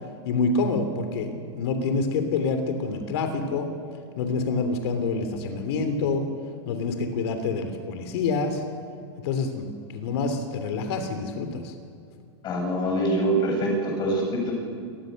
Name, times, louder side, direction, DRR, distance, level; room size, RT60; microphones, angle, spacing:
voice 1, 0.2-3.7 4.2-6.3 6.7-8.6 9.2-9.7 9.9-11.7, left 4 dB, 60° left, 7 dB, 3.1 m, -27 dB
voice 2, 12.4-14.5, right 1 dB, 30° left, 1 dB, 8.0 m, -24 dB
28.0 x 20.0 x 6.6 m, 2.5 s
supercardioid pair, 145°, 15 cm